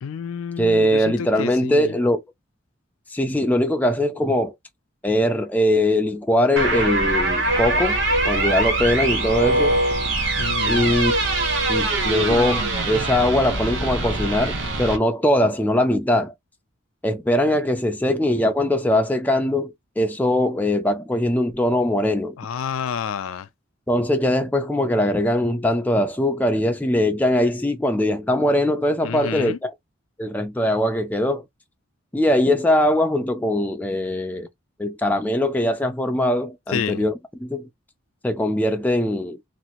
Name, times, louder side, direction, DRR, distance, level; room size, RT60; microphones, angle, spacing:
voice 1, 0.0-1.9 10.4-11.0 22.4-23.5 29.0-29.6 36.7-37.0, left 7 dB, 75° left, 0.4 m, -29 dB
voice 2, 0.6-2.2 3.1-4.5 5.0-8.0 8.2-9.8 10.7-11.2 11.7-16.3 17.0-22.4 23.9-29.7 30.2-31.4 32.1-34.5 34.8-37.1 37.4-37.7 38.2-39.4, left 1 dB, 10° left, 0.4 m, -21 dB
sound 1, 6.6-15.0, right 2 dB, 60° right, 0.9 m, -22 dB
2.8 x 2.5 x 2.9 m
head